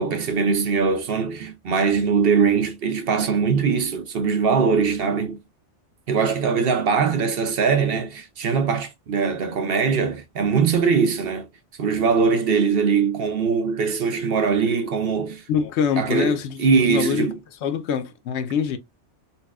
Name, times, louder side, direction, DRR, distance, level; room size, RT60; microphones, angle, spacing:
voice 1, 0.0-5.4 6.1-11.5 11.8-15.4 16.0-17.4, right 5 dB, 60° right, 0.8 m, -21 dB
voice 2, 15.5-17.3 17.6-18.8, left 7 dB, 70° left, 0.8 m, -24 dB
4.0 x 2.2 x 2.3 m
omnidirectional pair, 1.2 m